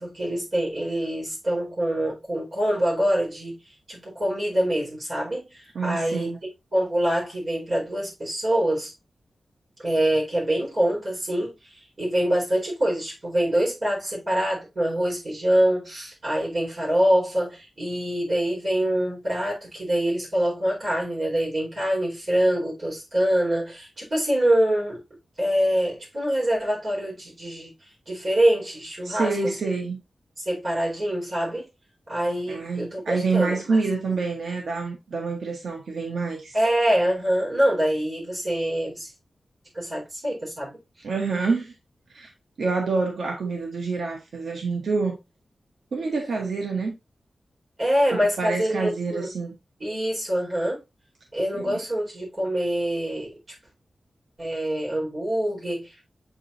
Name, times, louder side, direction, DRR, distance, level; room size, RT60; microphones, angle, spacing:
voice 1, 0.0-3.6 3.9-6.3 6.7-8.9 9.8-11.5 12.0-25.0 25.4-27.7 28.1-29.4 30.4-31.7 32.1-33.6 36.5-39.1 39.7-40.7 47.8-49.3 49.8-50.8 51.3-53.3 54.4-56.0, right 1 dB, 40° right, 4.6 m, -25 dB
voice 2, 5.7-6.4 29.0-30.0 32.5-36.5 41.0-41.7 42.1-42.3 42.6-45.2 45.9-46.9 48.1-49.5 51.5-51.8, right 4 dB, 85° right, 1.0 m, -27 dB
7.8 x 4.7 x 2.7 m
wide cardioid pair, 135°, 0 cm